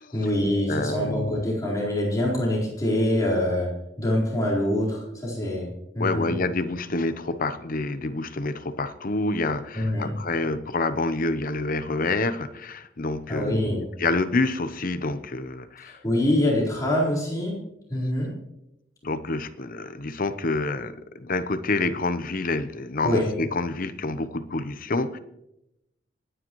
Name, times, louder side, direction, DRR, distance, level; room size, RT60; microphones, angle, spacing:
voice 1, 0.1-5.7 5.9-6.3 9.7-10.1 13.3-13.8 15.8-17.6 17.9-18.3 23.0-23.3, left 1 dB, 20° left, -6 dB, 4.3 m, -25 dB
voice 2, 0.7-1.4 6.0-16.0 19.0-25.2, left 2 dB, 50° left, 11 dB, 0.8 m, -28 dB
27.0 x 10.0 x 3.1 m, 0.86 s
head